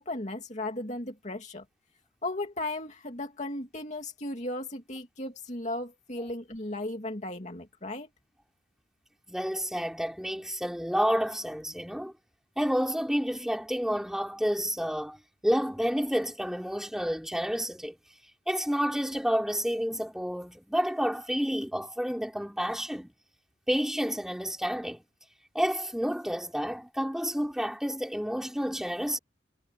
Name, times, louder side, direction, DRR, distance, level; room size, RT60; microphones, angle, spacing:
voice 1, 0.0-1.6 2.2-8.1, left 2 dB, 40° left, 2.6 m, -36 dB
voice 2, 9.3-12.1 12.6-18.0 18.5-23.1 23.7-25.0 25.5-29.2, equal, ahead, 5.8 m, -30 dB
head